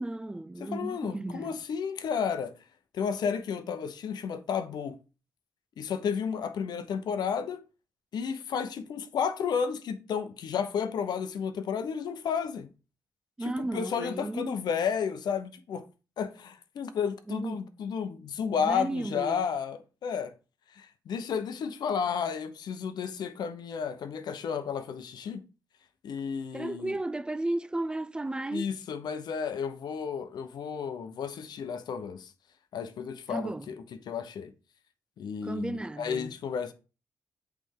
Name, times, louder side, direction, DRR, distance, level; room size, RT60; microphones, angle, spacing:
voice 1, 0.0-1.6 13.4-14.6 17.3-17.7 18.5-19.5 26.5-28.7 33.3-33.7 35.4-36.3, right 2 dB, 10° right, 0.3 m, -34 dB
voice 2, 0.6-2.5 2.9-5.0 5.8-7.6 8.1-12.7 13.4-15.9 16.2-20.3 20.7-25.4 26.0-27.0 28.5-32.3 32.7-33.7 34.1-34.5 35.2-36.7, left 7 dB, 75° left, 0.8 m, -32 dB
8.2 x 3.4 x 3.8 m
cardioid pair, 95°, 7 cm